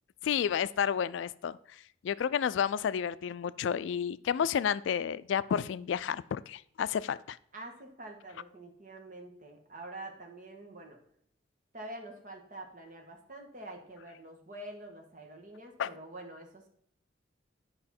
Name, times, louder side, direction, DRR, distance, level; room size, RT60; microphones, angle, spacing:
voice 1, 0.2-1.6 2.0-7.4 15.8-15.9, left 8 dB, 75° left, 17 dB, 0.3 m, -31 dB
voice 2, 7.5-11.0 11.7-16.7, right 1 dB, 45° right, 2 dB, 1.5 m, -46 dB
9.6 x 5.5 x 4.3 m, 0.66 s
head